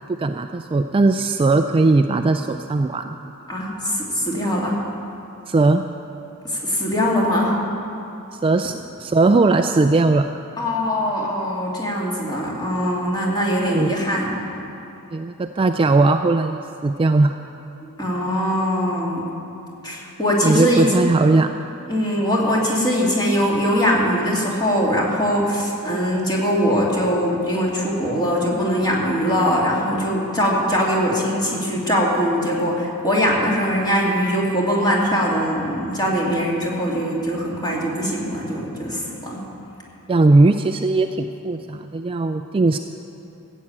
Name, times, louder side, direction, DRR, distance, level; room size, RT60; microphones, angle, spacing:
voice 1, 0.0-3.2 5.5-5.8 8.3-8.7 9.0-10.3 13.7-13.9 15.1-17.3 20.4-21.5 40.1-42.8, right 3 dB, 25° right, 6 dB, 0.3 m, -18 dB
voice 2, 3.5-4.8 6.4-7.5 10.6-14.3 18.0-19.2 19.8-20.9 21.9-39.4, equal, 20° left, -3 dB, 2.5 m, -21 dB
15.5 x 7.3 x 8.7 m, 3.0 s
head